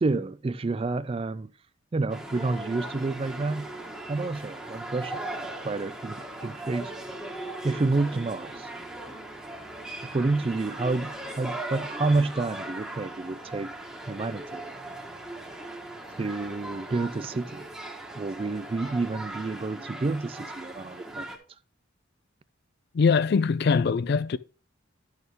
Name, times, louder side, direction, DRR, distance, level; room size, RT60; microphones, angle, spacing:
voice 1, 0.0-1.5 1.9-3.7 4.1-6.9 7.6-8.7 10.0-13.7 14.1-14.7 16.2-17.7 18.2-21.3, right 3 dB, 30° right, 0.4 m, -29 dB
sound 1, 2.1-21.4, right 1 dB, 5° right, 1.2 m, -39 dB
voice 2, 22.9-24.4, left 5 dB, 55° left, 0.4 m, -22 dB
10.5 x 6.5 x 3.4 m
head